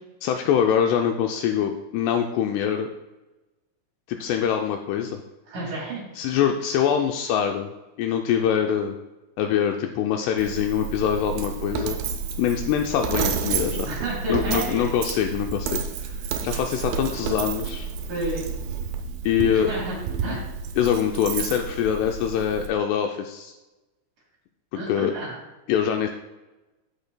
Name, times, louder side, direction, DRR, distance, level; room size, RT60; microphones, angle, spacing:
voice 1, 0.2-2.9 4.1-5.2 6.2-7.7 8.0-9.0 9.4-12.0 12.4-13.9 14.3-16.1 16.4-17.9 19.3-19.7 20.8-23.5 24.9-25.1 25.7-26.1, left 9 dB, 85° left, 4 dB, 2.5 m, -24 dB
voice 2, 5.5-6.0 13.9-14.9 15.1-15.2 18.1-18.5 19.5-20.4 24.7-25.4, right 1 dB, 50° right, -4 dB, 3.2 m, -31 dB
Coin (dropping), 10.4-22.7, right 6 dB, 85° right, 2.1 m, -30 dB
14.0 x 5.3 x 2.2 m, 1.1 s
omnidirectional pair, 5.1 m